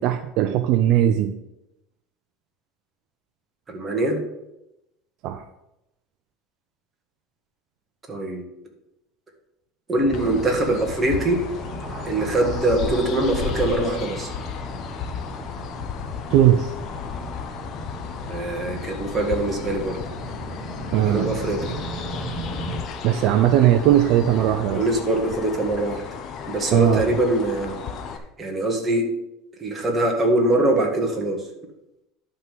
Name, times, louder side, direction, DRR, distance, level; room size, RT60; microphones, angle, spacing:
voice 1, 0.0-1.3 5.2-5.4 16.3-16.7 20.9-21.3 23.0-24.8 26.7-27.2, right 11 dB, 55° right, 9 dB, 0.5 m, -19 dB
voice 2, 3.7-4.2 8.1-8.4 9.9-11.4 12.1-14.3 18.3-20.0 21.1-21.6 24.8-26.0 26.5-27.8 28.4-29.1 29.6-31.4, right 1 dB, 15° right, 1 dB, 1.9 m, -23 dB
sound 1, 9.9-22.8, equal, 5° left, 2.2 m, -35 dB
sound 2, 10.1-28.2, left 7 dB, 40° left, 0.9 m, -34 dB
11.0 x 3.8 x 7.6 m, 0.89 s
cardioid pair, 150°, 0 cm